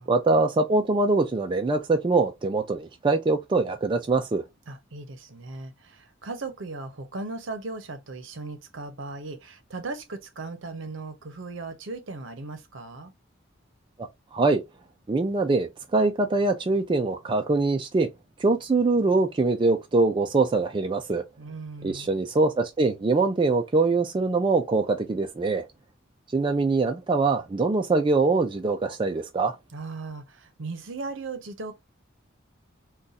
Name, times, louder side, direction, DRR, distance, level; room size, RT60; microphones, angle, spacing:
voice 1, 0.1-4.4 14.3-14.6 15.1-18.1 18.4-21.2 21.8-25.6 26.3-29.5, right 3 dB, 25° right, 0.3 m, -23 dB
voice 2, 4.7-13.1 21.4-22.1 29.7-31.7, right 3 dB, 65° right, 0.7 m, -37 dB
2.5 x 2.3 x 3.9 m
head